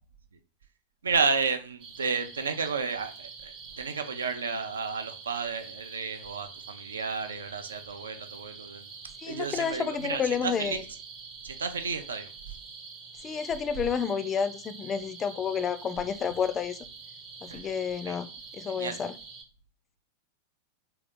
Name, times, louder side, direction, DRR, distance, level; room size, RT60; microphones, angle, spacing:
voice 1, 1.0-8.9 9.2-10.9 11.4-12.6 17.5-17.7 18.1-18.2 18.8-19.0, right 5 dB, 70° right, 0.5 m, -32 dB
sound 1, 1.8-19.4, right 5 dB, 40° right, 0.9 m, -46 dB
voice 2, 9.2-10.8 13.2-16.8 17.4-18.3 18.5-19.1, left 7 dB, 25° left, 0.4 m, -30 dB
3.9 x 2.8 x 3.5 m
figure-of-eight pair, 90°, 0 cm